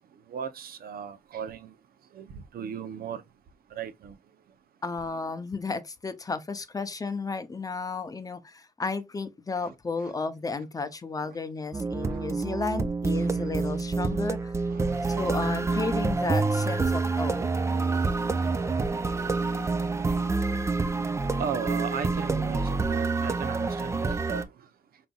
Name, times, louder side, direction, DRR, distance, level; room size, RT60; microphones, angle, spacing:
voice 1, 0.3-1.7 2.1-3.2 3.7-4.2 9.6-9.7 10.0-10.1 12.1-12.2 13.1-13.3 14.1-14.2 14.7-15.5 16.7-16.9 17.3-24.5, right 7 dB, 85° right, 0.7 m, -38 dB
voice 2, 4.8-14.6 15.1-17.5, left 4 dB, 25° left, 0.6 m, -33 dB
sound 1, 11.7-24.4, right 3 dB, 20° right, 0.4 m, -27 dB
5.3 x 4.0 x 2.3 m
wide cardioid pair, 160°, 15 cm